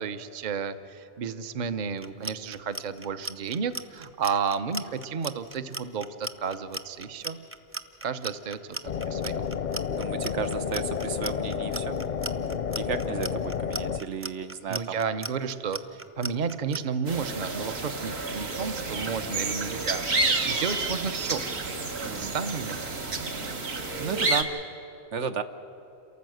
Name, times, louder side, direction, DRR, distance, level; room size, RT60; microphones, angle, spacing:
voice 1, 0.0-7.4 8.0-8.6 9.1-9.5 14.7-21.5 22.1-22.9, right 6 dB, 45° right, 10 dB, 0.8 m, -32 dB
Clock, 2.0-16.8, right 1 dB, 15° right, 0.5 m, -37 dB
sound 1, 8.9-14.0, left 7 dB, 50° left, 0.6 m, -31 dB
voice 2, 9.9-12.0 12.8-15.0 22.0-22.3 24.0-24.5 25.1-25.4, right 6 dB, 85° right, 9 dB, 1.2 m, -33 dB
sound 2, 17.1-24.4, right 3 dB, 65° right, 1.6 m, -30 dB
28.5 x 13.5 x 7.8 m, 2.9 s
omnidirectional pair, 1.2 m